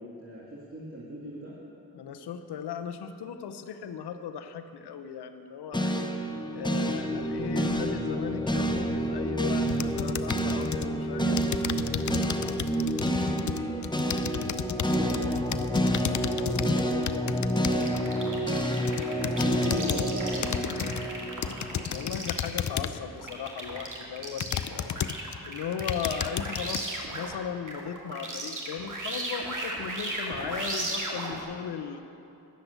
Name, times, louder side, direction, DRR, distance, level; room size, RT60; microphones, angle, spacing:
voice 1, 0.0-1.6 14.7-18.5 19.0-21.0, equal, 35° right, -6 dB, 2.2 m, -38 dB
voice 2, 1.9-12.4 21.9-25.0 25.4-32.0, left 7 dB, 90° left, 8 dB, 0.7 m, -37 dB
sound 1, 5.7-22.0, equal, 10° left, 0.9 m, -29 dB
sound 2, 9.7-10.9 11.4-18.1 18.6-20.1 20.4-21.1 21.4-23.1 23.7-23.8 24.4-25.4 25.7-26.8, left 9 dB, 50° left, 0.5 m, -33 dB
sound 3, 17.8-27.4 27.7-31.4, right 2 dB, 50° right, 2.2 m, -36 dB
10.5 x 7.0 x 7.9 m, 2.7 s
supercardioid pair, 40°, 39 cm